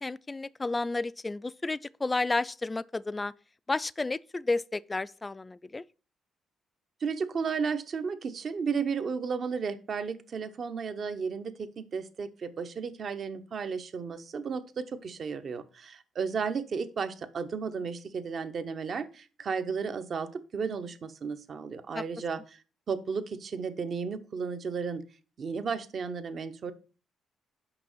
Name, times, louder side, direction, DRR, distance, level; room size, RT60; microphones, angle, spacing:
voice 1, 0.0-3.3 3.7-5.8 21.9-22.0, left 3 dB, 20° left, 0.3 m, -31 dB
voice 2, 7.0-22.6 22.9-25.0 25.4-26.7, right 5 dB, 50° right, 0.8 m, -33 dB
5.9 x 5.4 x 6.1 m
cardioid pair, 90°, 0 cm